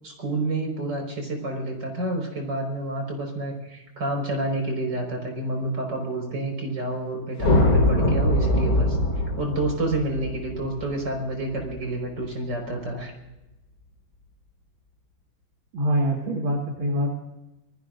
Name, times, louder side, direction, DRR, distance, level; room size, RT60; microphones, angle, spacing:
voice 1, 0.0-9.0 9.4-13.1, right 2 dB, 60° right, 1 dB, 5.8 m, -29 dB
sound 1, 7.4-11.8, left 1 dB, 50° left, 3.2 m, -22 dB
voice 2, 15.7-17.2, equal, 85° right, -1 dB, 2.8 m, -24 dB
28.0 x 19.5 x 2.6 m, 0.95 s
omnidirectional pair, 2.1 m